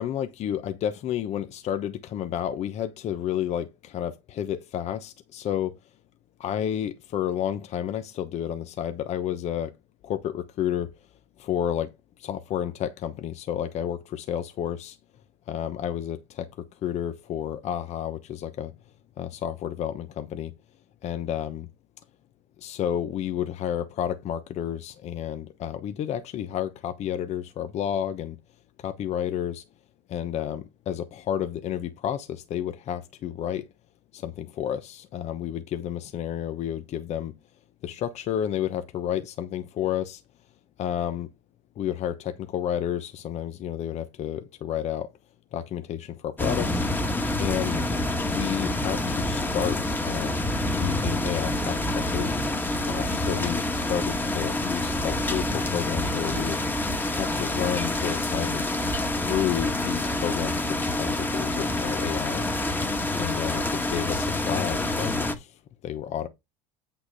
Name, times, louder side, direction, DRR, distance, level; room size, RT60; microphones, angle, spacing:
voice 1, 0.0-5.7 6.4-9.7 10.0-11.0 11.4-11.9 12.2-15.0 15.5-16.5 16.8-18.7 19.2-20.5 21.0-21.7 22.6-28.4 28.8-29.6 30.1-33.7 34.1-37.3 37.8-40.2 40.8-41.3 41.8-45.1 45.5-46.8 47.4-52.4 52.8-56.6 57.1-58.6 59.2-62.5 63.2-66.3, left 10 dB, 50° left, 1.0 m, -31 dB
sound 1, 46.4-65.4, left 2 dB, 15° left, 1.6 m, -27 dB
8.4 x 5.9 x 4.1 m
supercardioid pair, 100°, 15 cm